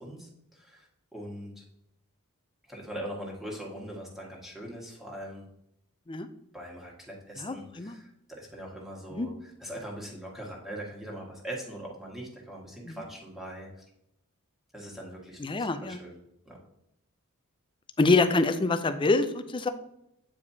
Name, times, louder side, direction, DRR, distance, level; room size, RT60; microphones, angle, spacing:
voice 1, 0.0-1.6 2.7-5.4 6.5-13.7 14.7-16.2 16.4-16.6, right 1 dB, ahead, -3 dB, 1.7 m, -41 dB
voice 2, 7.4-8.0 9.1-9.3 12.8-13.0 15.4-16.0 18.0-19.7, left 3 dB, 20° left, 10 dB, 0.5 m, -26 dB
8.7 x 4.8 x 2.8 m, 0.81 s
head